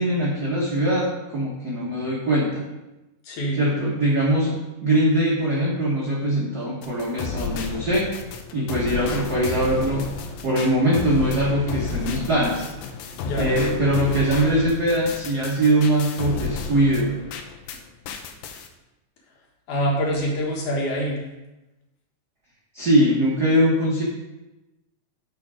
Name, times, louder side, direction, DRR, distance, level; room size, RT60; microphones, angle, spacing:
voice 1, 0.0-2.6 3.5-4.5 4.8-8.1 8.5-10.0 10.4-12.6 13.3-17.1 22.7-24.0, right 1 dB, 60° right, -5 dB, 1.0 m, -21 dB
voice 2, 3.2-3.7 13.2-13.5 19.7-21.2, equal, 65° left, -2 dB, 2.8 m, -25 dB
sound 1, 6.8-17.8 18.1-18.7, left 5 dB, 85° left, 2.5 m, -32 dB
9.9 x 5.0 x 4.9 m, 1.0 s
omnidirectional pair, 3.9 m